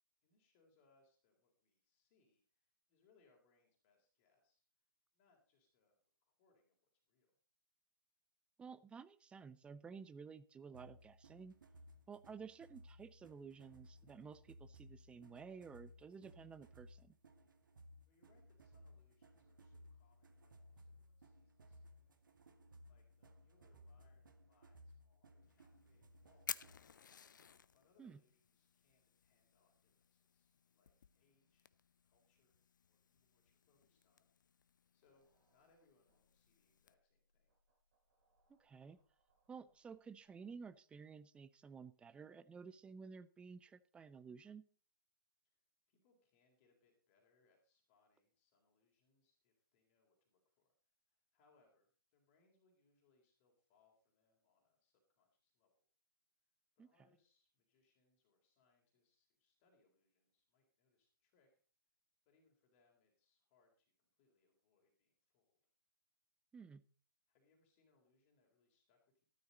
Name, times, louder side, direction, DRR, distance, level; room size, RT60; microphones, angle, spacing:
voice 1, 0.2-4.9 5.1-7.4 18.1-22.2 22.5-26.9 27.7-31.7 32.0-34.6 34.9-37.6 45.4-55.9 56.4-61.6 62.3-65.6 67.3-69.2, left 4 dB, 35° left, 1 dB, 3.8 m, -78 dB
voice 2, 8.6-11.5 12.1-17.1 28.0-28.2 38.5-39.0 39.5-44.6 56.8-56.9 66.5-66.8, right 5 dB, 10° right, 14 dB, 0.6 m, -53 dB
sound 1, 10.7-26.9, equal, 65° right, 2.1 m, -62 dB
Fire, 25.4-36.9, left 7 dB, 60° left, 0.7 m, -55 dB
sound 2, 35.0-40.7, right 1 dB, 50° right, 6.4 m, -83 dB
13.5 x 12.5 x 4.1 m, 0.40 s
figure-of-eight pair, 125°, 11 cm